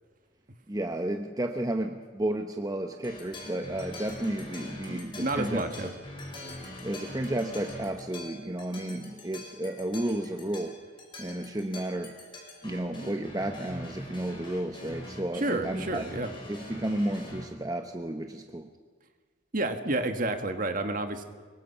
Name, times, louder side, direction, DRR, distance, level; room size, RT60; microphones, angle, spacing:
voice 1, 0.7-5.9 6.8-10.8 11.2-12.1 12.6-16.0 16.5-18.7, right 1 dB, 20° right, 5 dB, 0.9 m, -32 dB
sound 1, 3.0-17.4, left 1 dB, 25° left, 4.9 m, -44 dB
voice 2, 4.9-5.9 15.4-16.3 19.5-21.2, right 2 dB, 45° right, 7 dB, 1.7 m, -30 dB
25.0 x 23.0 x 5.7 m, 1.5 s
head